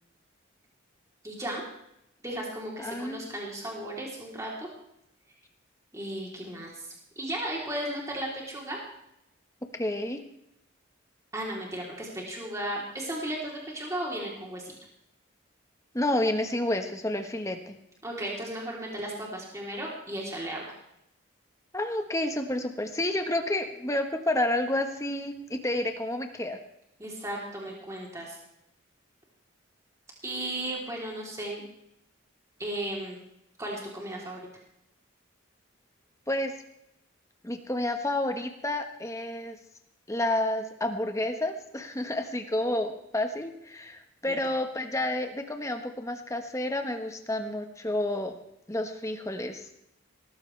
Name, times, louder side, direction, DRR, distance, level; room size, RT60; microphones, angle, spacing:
voice 1, 1.2-1.6 2.2-4.7 5.9-8.8 11.3-14.7 18.0-20.7 27.0-28.4 30.2-31.6 32.6-33.2 33.6-34.4 44.2-44.4, right 1 dB, 15° right, -3 dB, 3.5 m, -35 dB
voice 2, 2.8-3.3 9.7-10.2 15.9-17.8 21.7-26.6 36.3-36.5 37.4-39.6 40.1-48.4 48.7-49.8, left 1 dB, 15° left, 6 dB, 1.3 m, -30 dB
18.0 x 15.0 x 3.4 m, 0.81 s
head